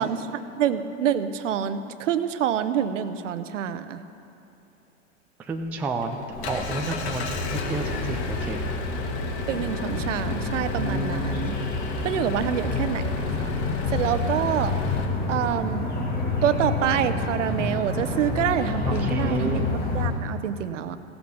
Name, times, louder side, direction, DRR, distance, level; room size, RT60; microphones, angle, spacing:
voice 1, 0.0-4.0 9.5-11.6 12.0-13.5 13.9-14.7 15.3-15.9 16.4-19.6 19.9-21.0, right 9 dB, 65° right, 12 dB, 0.9 m, -27 dB
voice 2, 5.4-8.6 11.5-11.6 18.8-19.7, right 3 dB, 5° right, 3 dB, 0.3 m, -31 dB
Engine, 5.5-15.1, left 5 dB, 55° left, 1.6 m, -34 dB
sound 1, 6.3-20.1, left 2 dB, 20° left, 2.8 m, -29 dB
16.0 x 7.9 x 7.0 m, 3.0 s
hypercardioid pair, 105°, 40 cm